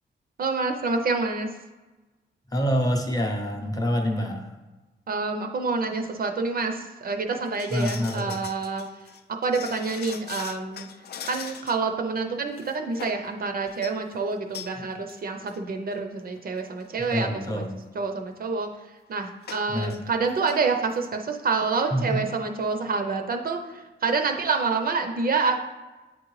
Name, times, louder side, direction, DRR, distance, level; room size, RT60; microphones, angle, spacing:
voice 1, 0.4-1.5 5.1-8.9 9.3-10.9 11.2-17.3 17.5-17.6 17.9-25.6, right 4 dB, 50° right, 5 dB, 0.5 m, -27 dB
voice 2, 2.5-4.6 7.7-8.4 17.1-17.8 19.7-19.9 21.9-22.2, equal, 20° left, 2 dB, 0.7 m, -26 dB
sound 1, 7.4-11.9 12.2-12.3 12.6-13.3 13.7-14.0 14.5-14.8 15.1-15.2 15.5-15.6 16.4-16.5 16.8-17.1 19.4-20.0 20.3-20.6 20.9-21.0, left 7 dB, 55° left, 0.4 m, -41 dB
8.2 x 3.7 x 3.1 m, 1.2 s
wide cardioid pair, 165°, 19 cm